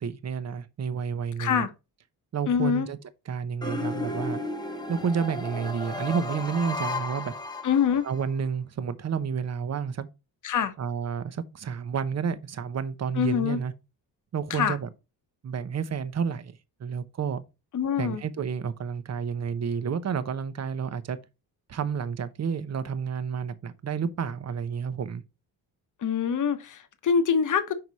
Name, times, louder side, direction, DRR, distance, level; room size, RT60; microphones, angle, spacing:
voice 1, 0.0-1.7 2.3-3.0 3.3-4.4 4.9-7.3 8.0-10.1 10.8-13.7 14.3-14.9 15.4-17.4 18.0-21.2 21.7-25.2, right 6 dB, 45° right, 0.8 m, -30 dB
voice 2, 1.4-1.7 2.5-2.9 7.6-8.0 10.4-10.7 13.2-13.6 14.5-14.7 17.7-18.2 26.0-27.7, left 7 dB, 50° left, 1.0 m, -24 dB
sound 1, 3.6-8.2, left 2 dB, 10° left, 0.9 m, -34 dB
5.8 x 4.7 x 4.0 m
cardioid pair, 115°, 38 cm